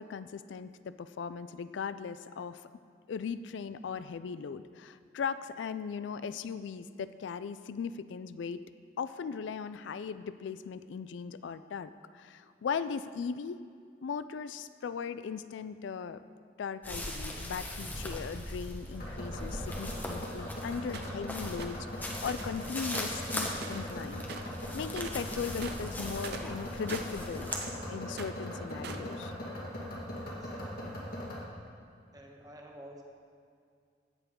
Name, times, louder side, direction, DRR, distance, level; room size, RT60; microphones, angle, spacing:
voice 1, 0.0-2.6 3.1-13.6 14.0-16.2 16.6-24.2 24.7-27.5 27.9-29.3, left 6 dB, 75° left, 13 dB, 0.3 m, -38 dB
sound 1, 16.8-27.6, left 1 dB, 10° left, 1.1 m, -40 dB
sound 2, 18.9-31.4, left 1 dB, 55° left, 1.8 m, -40 dB
sound 3, 20.9-21.2 21.6-21.8 22.2-22.6 22.9-24.0 24.3-24.6 24.9-25.2 25.5-27.8 28.1-29.1, right 5 dB, 60° right, 0.6 m, -44 dB
voice 2, 30.2-30.9 32.1-33.0, equal, 20° right, 1 dB, 1.1 m, -51 dB
17.0 x 6.9 x 3.7 m, 2.3 s
head